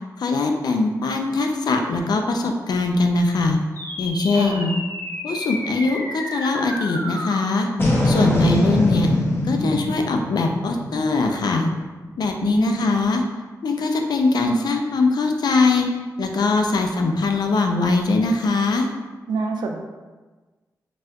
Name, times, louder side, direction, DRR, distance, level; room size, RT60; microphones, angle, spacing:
voice 1, 0.2-3.6 4.0-4.7 5.2-7.7 8.0-9.1 9.5-11.7 12.2-13.2 13.6-15.9 16.2-18.9, left 3 dB, 70° left, 4 dB, 0.4 m, -21 dB
sound 1, 3.8-12.3, left 1 dB, 30° left, 0.7 m, -25 dB
voice 2, 4.3-4.7 12.4-12.9 19.3-19.8, right 4 dB, 90° right, 3 dB, 0.4 m, -26 dB
4.1 x 2.2 x 2.4 m, 1.3 s
cardioid pair, 60°, 7 cm